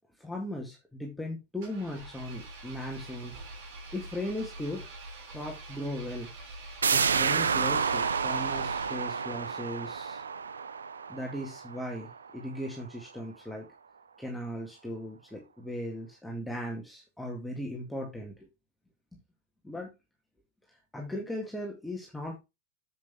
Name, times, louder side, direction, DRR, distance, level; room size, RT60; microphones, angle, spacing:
voice 1, 0.2-3.4 3.9-5.0 5.3-6.3 6.9-10.2 11.1-13.7 14.2-18.5 19.6-19.9 20.9-22.4, left 1 dB, 5° left, -1 dB, 2.1 m, -37 dB
Engine, 1.6-9.3, right 2 dB, 50° right, 3.3 m, -45 dB
sound 1, 6.8-12.3 12.6-12.7, right 6 dB, 70° right, 0.6 m, -30 dB
7.7 x 7.3 x 3.5 m, 0.24 s
figure-of-eight pair, 90°, 0 cm